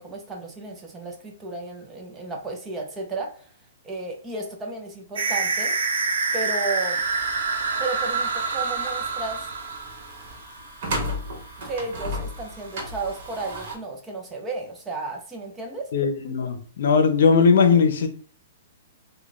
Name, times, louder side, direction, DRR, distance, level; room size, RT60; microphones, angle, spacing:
voice 1, 0.0-3.5 3.8-5.8 6.3-7.0 7.8-9.4 11.6-15.9, right 3 dB, 10° right, 0.6 m, -33 dB
sound 1, 5.2-10.1, right 4 dB, 75° right, 0.8 m, -26 dB
sound 2, 7.0-13.7, equal, 50° right, 1.1 m, -35 dB
voice 2, 15.9-18.1, left 5 dB, 60° left, 0.7 m, -19 dB
3.7 x 2.3 x 3.2 m
hypercardioid pair, 165°, 0 cm